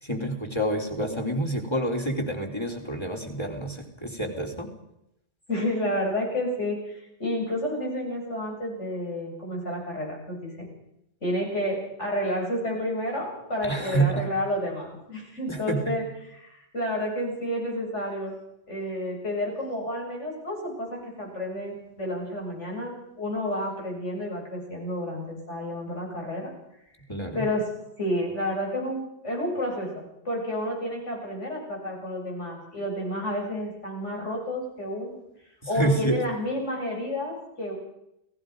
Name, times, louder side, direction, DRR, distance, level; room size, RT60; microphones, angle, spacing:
voice 1, 0.0-4.7 13.6-14.3 15.5-16.0 27.1-27.5 35.8-36.2, right 1 dB, 25° left, 3 dB, 3.6 m, -28 dB
voice 2, 5.5-10.7 11.2-18.3 18.7-26.5 27.3-27.6 28.0-35.2 35.7-37.7, left 1 dB, 90° left, -1 dB, 8.0 m, -30 dB
29.5 x 18.5 x 5.3 m, 0.81 s
omnidirectional pair, 1.2 m